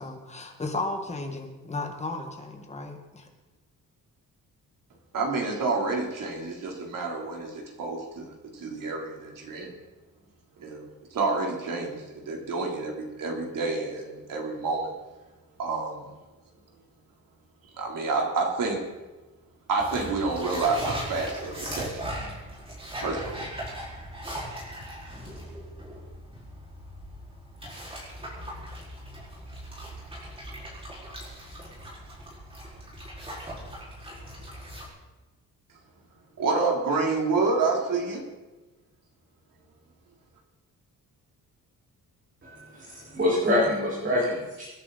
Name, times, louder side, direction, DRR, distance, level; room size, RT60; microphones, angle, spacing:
voice 1, 0.0-3.3, left 2 dB, 20° left, 3 dB, 1.9 m, -34 dB
voice 2, 5.1-9.7 10.6-10.9 11.1-14.9 15.6-16.0 17.8-18.8 19.7-22.0 23.0-23.4 36.4-38.2, right 3 dB, 65° right, 0 dB, 3.7 m, -28 dB
sound 1, 19.8-34.9, equal, 15° right, 4.8 m, -39 dB
voice 3, 42.4-44.7, left 1 dB, 35° right, -8 dB, 4.9 m, -26 dB
26.5 x 11.0 x 4.2 m, 1.1 s
wide cardioid pair, 180°, 34 cm